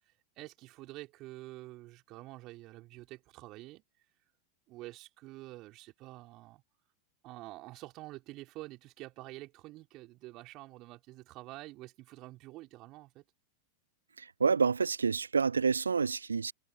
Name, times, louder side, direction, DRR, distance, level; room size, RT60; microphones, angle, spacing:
voice 1, 0.4-3.8 4.7-6.6 7.2-13.2, right 19 dB, 40° right, 5.5 m, -48 dB
voice 2, 14.4-16.5, right 5 dB, 80° right, 0.4 m, -28 dB
figure-of-eight pair, 90°, 0 cm